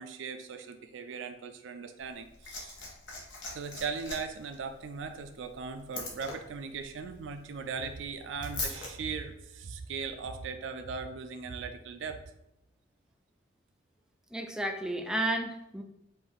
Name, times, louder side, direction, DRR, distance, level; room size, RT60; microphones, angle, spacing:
voice 1, 0.0-2.8 3.5-12.2, right 5 dB, 80° right, 7 dB, 0.4 m, -38 dB
Liquid, 2.0-8.9 10.0-10.1, left 3 dB, 90° left, 1.1 m, -42 dB
voice 2, 14.3-15.8, right 1 dB, 5° right, 4 dB, 0.4 m, -32 dB
5.3 x 2.6 x 3.5 m, 0.81 s
head